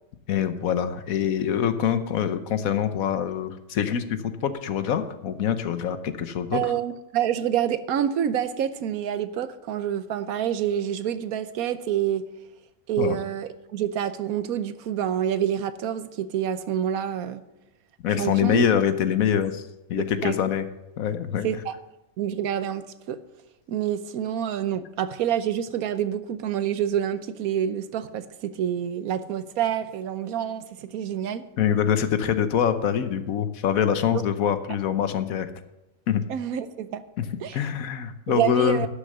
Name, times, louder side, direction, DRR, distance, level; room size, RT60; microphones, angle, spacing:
voice 1, 0.3-6.7 13.0-13.2 18.0-19.6 19.9-20.7 21.0-21.5 31.6-35.5 36.1-36.2 37.2-37.3 37.5-38.9, left 8 dB, 75° left, 11 dB, 1.2 m, -24 dB
voice 2, 6.5-12.2 12.9-17.4 18.2-18.6 20.0-20.4 21.4-21.7 22.2-23.2 23.7-31.4 36.3-37.0 37.4-37.6 38.3-38.9, right 10 dB, 80° right, 12 dB, 1.2 m, -27 dB
11.5 x 6.5 x 6.5 m, 0.93 s
omnidirectional pair, 1.5 m